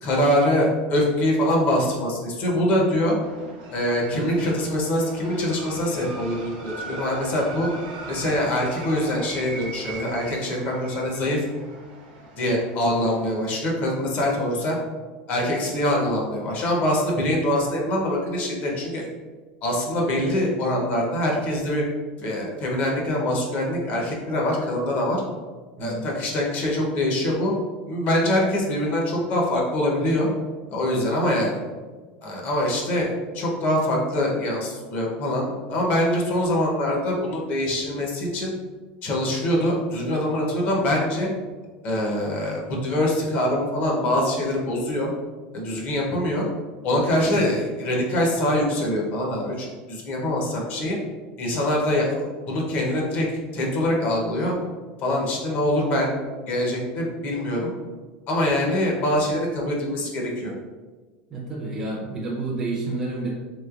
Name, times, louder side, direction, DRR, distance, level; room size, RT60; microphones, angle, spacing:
voice 1, 0.0-3.2 3.7-7.7 8.1-11.4 12.4-14.8 15.3-19.1 19.6-21.8 22.2-25.2 25.8-27.5 27.9-30.3 30.7-31.6 32.2-33.1 33.3-38.5 39.0-41.3 41.8-45.1 45.5-46.5 46.8-51.0 51.4-53.3 53.5-54.5 55.0-57.7 58.3-60.5, left 1 dB, 40° left, -2 dB, 0.8 m, -24 dB
sound 1, 3.2-13.2, right 2 dB, 90° right, 0.9 m, -39 dB
voice 2, 61.3-63.3, right 2 dB, 15° right, -4 dB, 0.5 m, -29 dB
3.1 x 3.1 x 2.4 m, 1.4 s
supercardioid pair, 160°, 4 cm